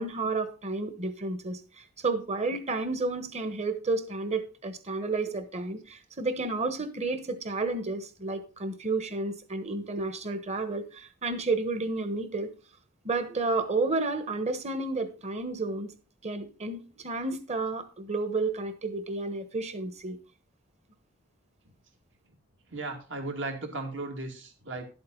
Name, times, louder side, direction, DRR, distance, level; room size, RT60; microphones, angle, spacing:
voice 1, 0.0-12.5 13.0-15.9 16.2-20.2, right 3 dB, 35° right, 1.3 m, -31 dB
voice 2, 22.7-24.9, right 2 dB, 65° right, 2.4 m, -36 dB
12.0 x 7.8 x 3.9 m
head